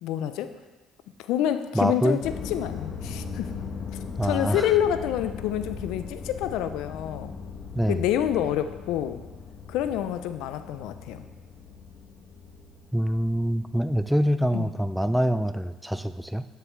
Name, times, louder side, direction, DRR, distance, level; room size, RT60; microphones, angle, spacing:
voice 1, 0.0-0.5 1.2-2.2 2.5-3.5 4.2-7.3 7.9-9.2 9.7-11.3 14.5-14.7, left 10 dB, 80° left, 11 dB, 0.4 m, -27 dB
voice 2, 1.7-2.2 4.2-4.7 7.7-8.0 12.9-16.5, equal, ahead, 11 dB, 0.4 m, -25 dB
sound 1, 2.2-14.3 14.7-15.3, left 5 dB, 55° left, 1.0 m, -39 dB
8.9 x 6.7 x 3.1 m, 1.2 s
supercardioid pair, 85°, 0 cm